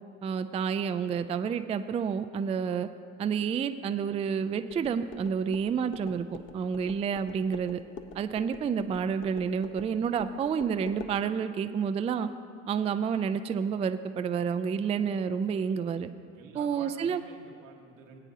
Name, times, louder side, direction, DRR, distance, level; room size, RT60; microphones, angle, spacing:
voice 1, 0.2-2.9 3.2-6.3 6.5-7.8 8.1-12.3 12.7-16.1 16.5-17.2, right 6 dB, 15° right, 10 dB, 0.3 m, -29 dB
sound 1, 4.7-11.2, left 5 dB, 30° left, 0.8 m, -46 dB
voice 2, 16.3-18.2, right 5 dB, 85° right, 0 dB, 1.5 m, -49 dB
19.5 x 8.9 x 2.8 m, 2.4 s
hypercardioid pair, 65°, 40 cm